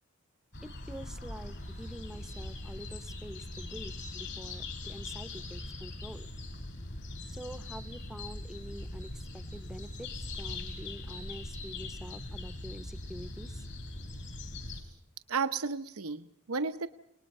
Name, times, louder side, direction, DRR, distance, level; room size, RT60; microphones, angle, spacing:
sound 1, 0.5-14.8, left 2 dB, 55° left, 4.9 m, -41 dB
voice 1, 0.6-6.3 7.3-13.7, equal, ahead, 12 dB, 0.8 m, -46 dB
voice 2, 15.3-16.9, right 5 dB, 90° right, 9 dB, 0.9 m, -33 dB
29.5 x 19.5 x 5.5 m, 0.82 s
head